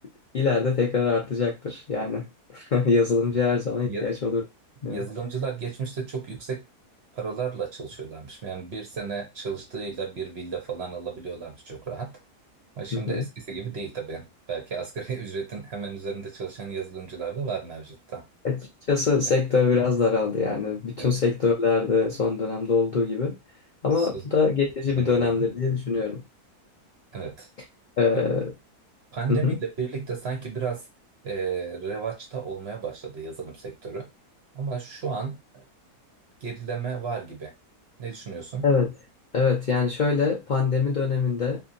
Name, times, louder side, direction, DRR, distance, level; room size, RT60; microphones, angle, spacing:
voice 1, 0.3-2.3 2.5-4.4 4.8-5.1 12.9-13.2 18.4-18.6 18.9-23.4 23.8-26.2 28.0-28.5 29.3-29.6 38.6-38.9 39.3-41.6, left 4 dB, 65° left, -1 dB, 0.4 m, -23 dB
voice 2, 4.9-6.6 7.1-12.2 12.8-18.3 24.0-24.2 24.9-25.4 27.1-27.5 28.1-28.4 29.1-30.9 31.2-34.1 34.5-35.6 36.4-37.5 38.0-38.7, right 5 dB, 55° right, 2 dB, 0.8 m, -33 dB
2.7 x 2.7 x 2.5 m, 0.23 s
omnidirectional pair, 1.7 m